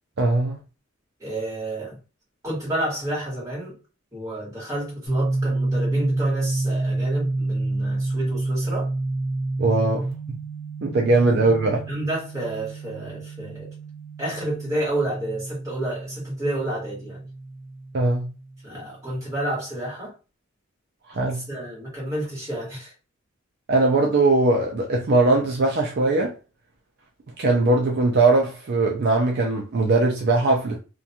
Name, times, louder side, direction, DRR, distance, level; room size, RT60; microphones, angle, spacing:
voice 1, 0.2-0.6 9.6-10.4 10.8-11.9 17.9-18.3 21.1-21.4 23.7-26.4 27.4-30.8, right 2 dB, 50° right, 0.4 m, -20 dB
voice 2, 1.2-2.0 2.4-3.8 4.1-8.9 10.9-11.1 11.9-13.7 14.2-17.2 18.6-20.1 21.2-22.9, right 1 dB, 15° right, 1.4 m, -30 dB
sound 1, 5.1-18.7, right 2 dB, 45° left, 0.7 m, -29 dB
2.5 x 2.2 x 2.7 m
head